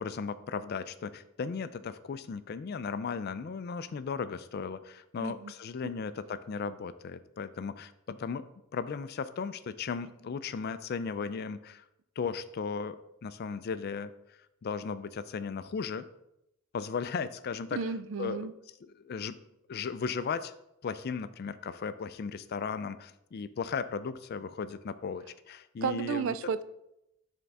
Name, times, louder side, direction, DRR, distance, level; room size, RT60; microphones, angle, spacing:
voice 1, 0.0-8.4 8.7-11.8 12.2-14.1 14.6-16.1 16.7-17.8 18.2-18.5 18.8-19.4 19.7-20.5 20.8-26.3, left 5 dB, 45° left, 13 dB, 0.3 m, -36 dB
voice 2, 5.2-5.5 17.7-18.5 25.8-26.6, right 6 dB, 60° right, 14 dB, 0.4 m, -33 dB
11.0 x 3.7 x 3.4 m, 0.84 s
head